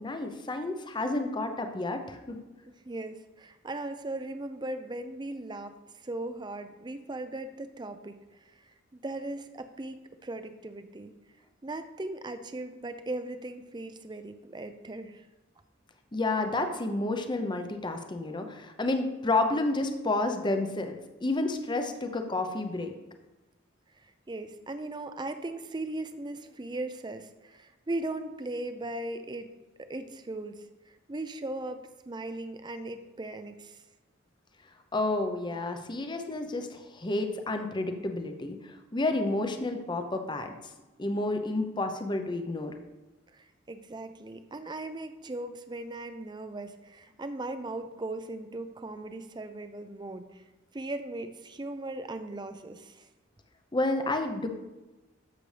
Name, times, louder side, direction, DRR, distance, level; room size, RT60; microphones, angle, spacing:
voice 1, 0.0-2.4 16.1-22.9 34.9-40.5 41.0-42.7 53.7-54.5, left 2 dB, 25° left, 6 dB, 0.7 m, -30 dB
voice 2, 2.7-8.2 8.6-11.1 11.6-15.2 24.0-29.5 29.8-30.6 31.1-33.8 43.3-50.4 50.7-53.1, right 2 dB, 20° right, 9 dB, 0.5 m, -38 dB
13.0 x 6.7 x 3.3 m, 1.1 s
head